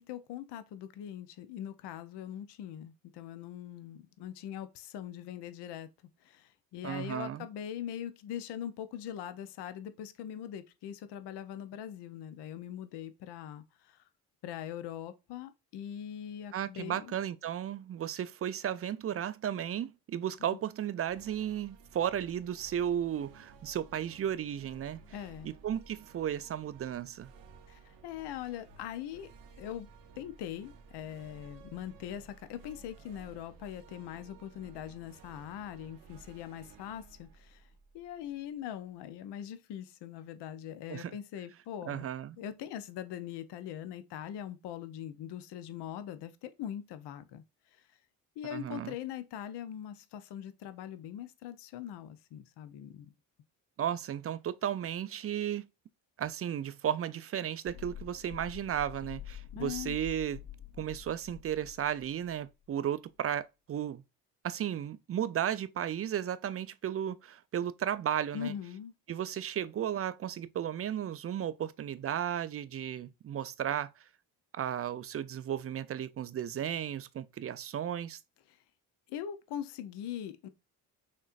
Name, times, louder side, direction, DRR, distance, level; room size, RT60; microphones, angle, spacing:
voice 1, 0.0-5.9 6.2-14.0 14.4-17.2 25.1-25.5 27.7-29.3 29.6-29.9 30.2-37.7 37.9-42.0 42.4-47.4 47.7-47.8 48.4-53.1 59.5-60.0 68.3-68.9 78.5-78.6 79.1-80.5, left 10 dB, 60° left, 0.7 m, -42 dB
voice 2, 6.8-7.5 16.5-25.0 25.4-27.3 40.9-41.1 41.9-42.4 48.5-48.9 53.8-55.7 56.2-60.4 60.8-64.0 64.4-68.5 69.1-74.0 74.5-78.2, right 10 dB, 30° right, 0.4 m, -34 dB
sound 1, 21.0-38.5, right 4 dB, 85° right, 0.9 m, -56 dB
sound 2, 57.7-62.5 62.8-62.9, left 11 dB, 40° left, 0.4 m, -47 dB
6.3 x 2.9 x 2.5 m
hypercardioid pair, 55°, 46 cm